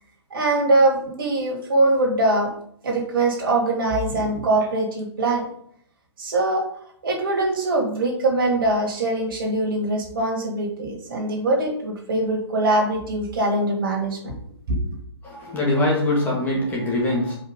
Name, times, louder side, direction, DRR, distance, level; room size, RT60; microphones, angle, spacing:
voice 1, 0.3-2.5 2.8-5.5 6.2-6.7 7.0-14.3 14.7-14.8, right 2 dB, 50° right, 0 dB, 2.5 m, -22 dB
voice 2, 15.2-17.3, left 1 dB, 10° left, -4 dB, 2.0 m, -23 dB
5.8 x 5.3 x 5.3 m, 0.66 s
figure-of-eight pair, 145°, 15 cm